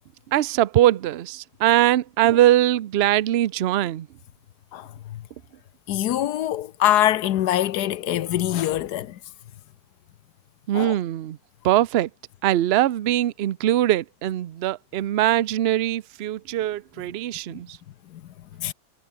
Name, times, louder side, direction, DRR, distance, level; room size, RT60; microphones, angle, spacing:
voice 1, 0.3-4.1 10.7-11.4 11.6-12.1 12.4-17.8, right 13 dB, 60° right, 0.7 m, -21 dB
voice 2, 4.7-5.2 5.9-9.2 10.7-10.9 18.1-18.2 18.6-18.7, left 12 dB, 85° left, 1.3 m, -24 dB
omnidirectional pair, 1.7 m